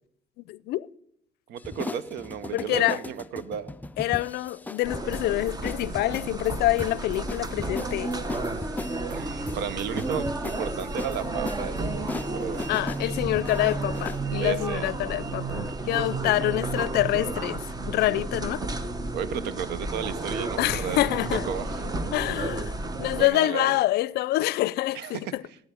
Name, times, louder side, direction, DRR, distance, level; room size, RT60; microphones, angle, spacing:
voice 1, 0.5-0.9 2.5-3.0 4.0-8.1 12.7-18.6 20.6-21.4 22.1-22.7 23.0-25.4, left 16 dB, 75° left, 0.5 m, -26 dB
voice 2, 1.5-3.7 9.1-12.0 12.3-12.8 14.4-14.9 19.1-21.9 23.1-23.8 24.9-25.6, right 8 dB, 80° right, 0.8 m, -34 dB
sound 1, 1.6-14.3, left 3 dB, 10° left, 0.4 m, -39 dB
sound 2, 4.8-23.3, right 2 dB, 20° right, 0.9 m, -32 dB
13.0 x 9.3 x 5.1 m
cardioid pair, 110°, 17 cm